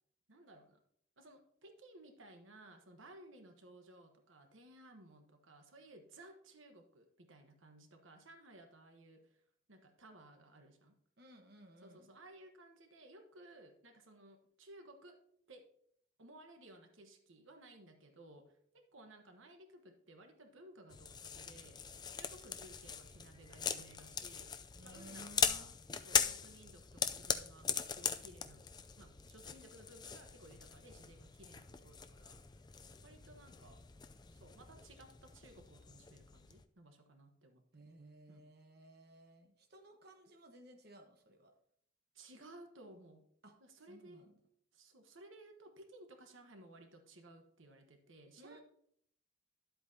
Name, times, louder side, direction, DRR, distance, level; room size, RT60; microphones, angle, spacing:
voice 1, 0.3-0.8 1.2-9.4 9.7-10.9 11.8-15.2 15.5-15.7 16.2-21.8 22.1-24.5 24.8-25.8 26.0-28.7 29.0-32.4 33.0-33.8 34.3-37.6 38.3-38.5 42.1-43.3 43.6-44.3 44.7-48.6, right 1 dB, 75° right, 5 dB, 1.2 m, -58 dB
voice 2, 11.2-12.2 24.7-25.7 37.7-41.5 43.4-44.3 48.4-48.6, right 1 dB, 50° right, 3 dB, 1.1 m, -58 dB
sound 1, 20.9-36.6, left 7 dB, 20° left, 0.4 m, -40 dB
11.5 x 8.0 x 2.8 m, 0.66 s
head